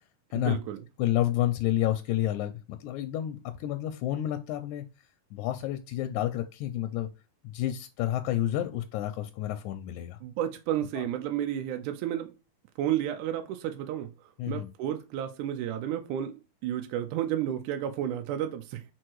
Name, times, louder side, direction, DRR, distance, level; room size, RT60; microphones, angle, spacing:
voice 1, 0.4-0.8 10.2-12.3 12.8-18.8, right 11 dB, 80° right, 2.0 m, -32 dB
voice 2, 1.0-4.8 5.3-7.1 7.4-10.2 11.0-11.1 14.4-14.7, left 13 dB, 80° left, 1.9 m, -30 dB
4.5 x 4.5 x 4.6 m
omnidirectional pair, 3.7 m